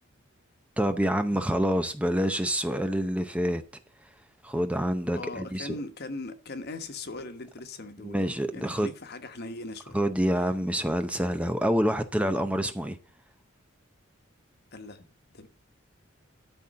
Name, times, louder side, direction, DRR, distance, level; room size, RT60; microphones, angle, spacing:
voice 1, 0.8-3.6 4.4-5.8 8.0-8.9 9.9-13.0, equal, 5° right, 0.6 m, -27 dB
voice 2, 5.1-10.0 14.7-15.0 15.3-15.5, left 2 dB, 55° left, 1.3 m, -39 dB
12.5 x 4.3 x 7.5 m
head